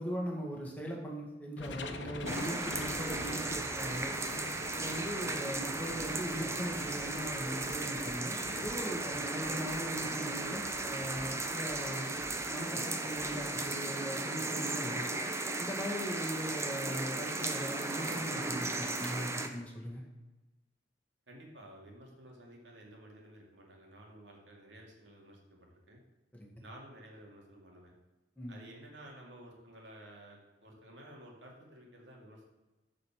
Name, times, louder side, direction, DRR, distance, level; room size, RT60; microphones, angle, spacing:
voice 1, 0.0-4.1 4.7-12.1 12.5-15.1 15.6-20.0 26.3-26.5 28.4-28.6, equal, 10° left, -3 dB, 2.0 m, -40 dB
sound 1, 1.6-14.0, left 2 dB, 90° left, 0.9 m, -47 dB
sound 2, 2.3-19.5, right 2 dB, 15° right, 0.7 m, -36 dB
voice 2, 21.3-26.0 26.6-27.9 28.5-32.5, right 1 dB, 80° right, -1 dB, 2.4 m, -53 dB
9.2 x 5.0 x 7.3 m, 1.1 s
head